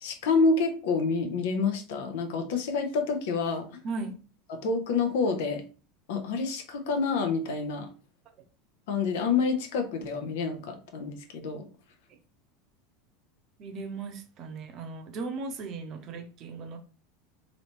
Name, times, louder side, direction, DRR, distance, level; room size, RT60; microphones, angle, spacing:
voice 1, 0.0-3.7 4.5-5.6 6.1-7.9 8.9-11.7, left 4 dB, 60° left, 6 dB, 0.7 m, -28 dB
voice 2, 13.6-16.8, right 3 dB, 45° right, 5 dB, 0.7 m, -37 dB
3.0 x 2.9 x 3.1 m, 0.36 s
figure-of-eight pair, 75°, 0 cm